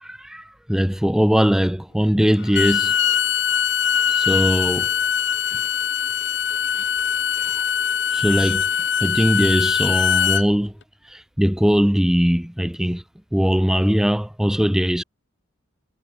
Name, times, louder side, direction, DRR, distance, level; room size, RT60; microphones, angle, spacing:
voice 1, 0.0-2.9 4.1-4.9 8.1-8.7 9.0-10.7 11.1-13.0 13.3-15.0, equal, 5° right, 0.4 m, -20 dB
Bowed string instrument, 2.4-10.4, left 8 dB, 65° left, 1.4 m, -22 dB
head